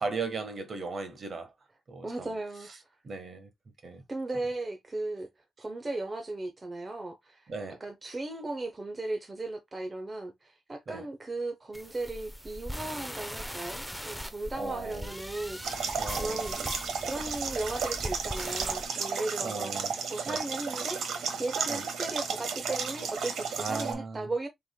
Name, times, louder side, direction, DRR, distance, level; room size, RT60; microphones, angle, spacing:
voice 1, 0.0-1.5 1.9-2.3 3.0-3.5 3.8-4.0 7.5-7.8 10.9-11.0 14.5-15.1 16.0-16.5 19.4-19.9 20.3-20.4 21.7-21.8 23.6-24.3, right 4 dB, 45° right, 1.3 m, -37 dB
voice 2, 2.0-2.7 4.1-5.3 5.6-7.5 7.8-16.7 17.0-24.5, right 2 dB, 25° right, 0.9 m, -36 dB
sound 1, 11.7-18.8, equal, ahead, 0.6 m, -40 dB
sound 2, 15.6-23.9, right 6 dB, 85° right, 1.3 m, -33 dB
6.0 x 3.4 x 2.2 m
cardioid pair, 90°, 0 cm